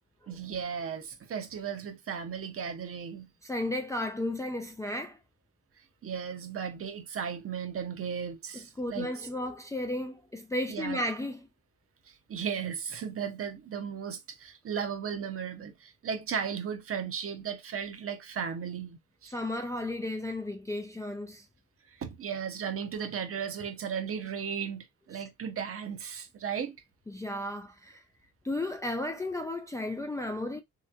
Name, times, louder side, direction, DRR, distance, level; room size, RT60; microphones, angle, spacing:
voice 1, 0.3-3.3 6.0-9.2 10.7-11.0 12.3-19.3 22.0-26.8, right 7 dB, 50° right, 0.7 m, -35 dB
voice 2, 3.4-5.2 8.5-11.5 19.3-21.5 25.1-25.2 27.1-28.0 28.4-30.6, left 1 dB, 10° left, 0.3 m, -34 dB
3.2 x 2.9 x 2.3 m
cardioid pair, 90°, 30 cm